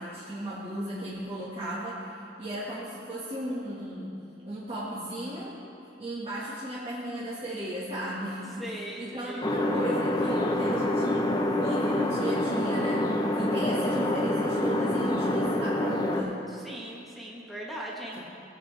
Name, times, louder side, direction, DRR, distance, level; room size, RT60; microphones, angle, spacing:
voice 1, 0.0-2.1 2.4-4.1 4.5-5.5 6.0-11.1 11.4-16.4, equal, 30° right, -9 dB, 1.7 m, -35 dB
voice 2, 8.6-9.4 16.5-18.2, right 1 dB, ahead, -4 dB, 1.3 m, -39 dB
sound 1, 9.4-16.2, left 1 dB, 20° left, 0.8 m, -26 dB
19.5 x 8.8 x 3.4 m, 2.6 s
head